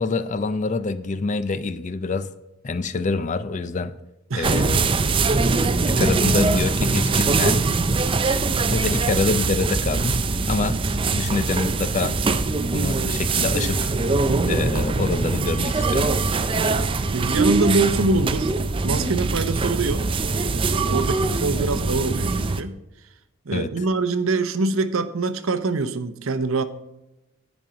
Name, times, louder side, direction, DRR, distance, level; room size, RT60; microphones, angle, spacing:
voice 1, 0.0-2.3 2.6-3.9 4.3-5.0 5.9-7.6 8.6-10.2 10.5-10.8 11.1-12.1 12.7-13.9 14.4-16.1 23.5-23.7, left 3 dB, 35° left, 0.4 m, -26 dB
sound 1, 4.4-22.6, right 3 dB, 25° right, 0.4 m, -22 dB
voice 2, 17.1-18.5 18.8-20.1 20.9-22.8 23.5-26.6, right 3 dB, 70° right, 0.7 m, -24 dB
10.5 x 5.3 x 6.3 m
head